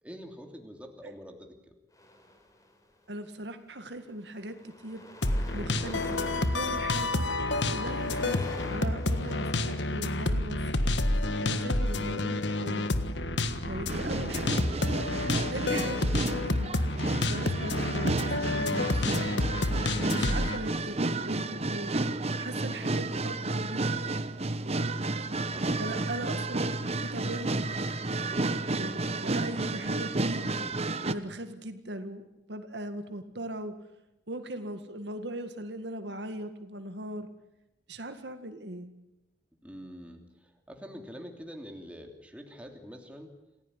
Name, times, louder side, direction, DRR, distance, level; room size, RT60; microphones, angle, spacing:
voice 1, 0.0-1.7 11.2-11.8 25.5-26.2 39.6-43.3, equal, 5° right, 3 dB, 3.1 m, -46 dB
sound 1, 1.9-2.9 3.7-3.9 4.2-10.7, left 1 dB, 20° left, 4.4 m, -47 dB
voice 2, 3.1-5.0 5.5-7.2 7.7-10.6 11.4-12.9 13.6-14.6 15.5-16.7 17.1-19.3 20.1-21.9 22.4-24.1 25.0-25.1 25.8-26.6 27.0-27.7 28.7-30.6 31.0-33.7 34.3-37.3 37.9-38.9, right 1 dB, 70° right, 8 dB, 2.0 m, -39 dB
sound 2, 5.2-20.6, left 2 dB, 80° left, 1.6 m, -29 dB
sound 3, 13.9-31.1, right 2 dB, 35° right, 1.1 m, -31 dB
27.5 x 16.5 x 10.0 m, 0.94 s
head